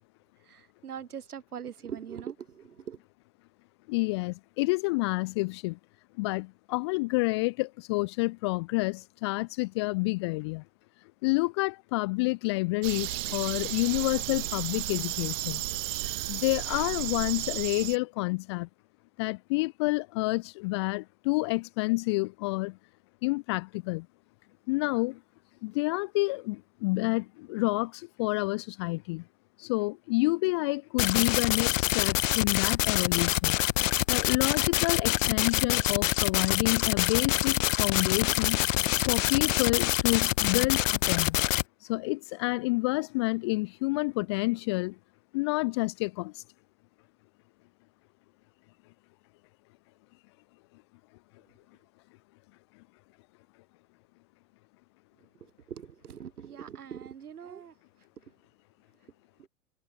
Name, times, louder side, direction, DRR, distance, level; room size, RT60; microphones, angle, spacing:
voice 1, 0.5-3.0 55.7-57.7, right 8 dB, 80° right, 4.4 m, -41 dB
voice 2, 3.9-5.8 6.2-10.6 11.2-15.6 16.3-18.7 19.2-22.8 23.2-24.1 24.7-25.2 25.6-29.2 29.6-33.6 34.1-38.6 39.1-41.4 41.8-45.0 45.3-46.4, left 25 dB, 20° left, 0.3 m, -29 dB
sound 1, 12.8-18.0, right 16 dB, 60° right, 7.2 m, -33 dB
sound 2, 31.0-41.6, left 16 dB, 60° left, 2.2 m, -26 dB
hypercardioid pair, 115°, 44 cm